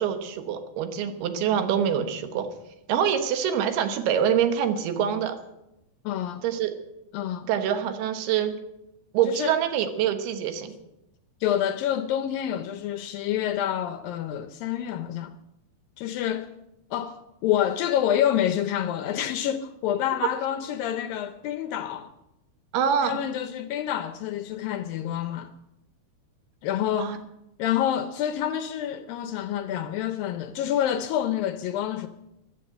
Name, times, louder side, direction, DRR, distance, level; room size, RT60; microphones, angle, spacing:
voice 1, 0.0-2.5 2.9-5.4 6.4-6.7 7.5-8.5 9.1-10.7 20.2-20.3 22.7-23.2 27.0-27.2, right 8 dB, 75° right, 3.2 m, -25 dB
voice 2, 6.1-6.4 7.1-7.5 9.2-9.5 11.4-15.4 16.0-16.5 16.9-22.1 23.0-25.5 26.6-27.2 27.6-32.1, left 10 dB, 80° left, 2.2 m, -27 dB
14.0 x 12.0 x 7.8 m
omnidirectional pair, 4.6 m